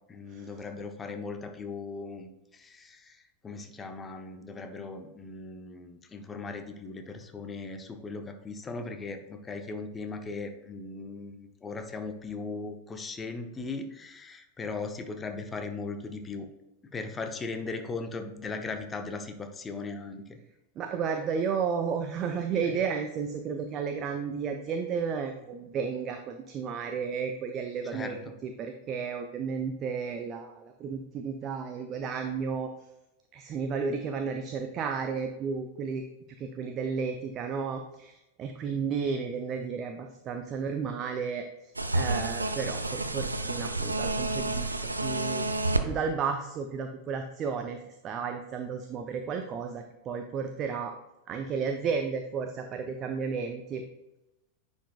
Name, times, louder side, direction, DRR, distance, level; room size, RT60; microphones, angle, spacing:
voice 1, 0.1-2.3 2.5-3.2 3.4-16.5 16.9-20.4 27.8-28.2, left 3 dB, 15° left, 6 dB, 0.8 m, -38 dB
voice 2, 20.8-32.7 33.3-36.0 36.4-41.4 41.9-45.5 45.8-47.8 48.0-51.0 51.3-53.8, right 6 dB, 30° right, 6 dB, 0.5 m, -33 dB
sound 1, 41.7-45.9, right 2 dB, 80° right, 0.5 m, -30 dB
9.9 x 5.3 x 2.3 m, 0.93 s
figure-of-eight pair, 90°, 0 cm